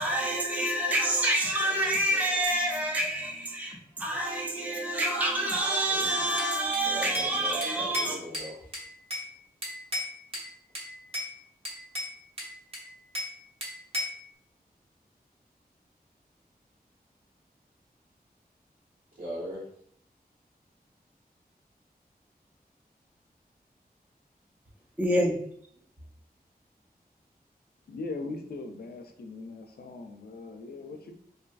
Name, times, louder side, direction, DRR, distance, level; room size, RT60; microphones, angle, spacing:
voice 1, 0.0-8.2 25.0-25.5, right 1 dB, 10° right, 0.4 m, -27 dB
voice 2, 5.9-6.4 6.8-8.7 19.2-19.7, equal, 65° right, 1.5 m, -39 dB
Bell / Glass, 6.4-7.3 7.6-9.3 9.6-10.5 10.7-11.3 11.6-13.3 13.6-14.2, left 1 dB, 35° right, 0.8 m, -35 dB
voice 3, 27.9-31.1, left 3 dB, 75° left, 0.4 m, -40 dB
2.6 x 2.4 x 2.3 m
wide cardioid pair, 95°, 16 cm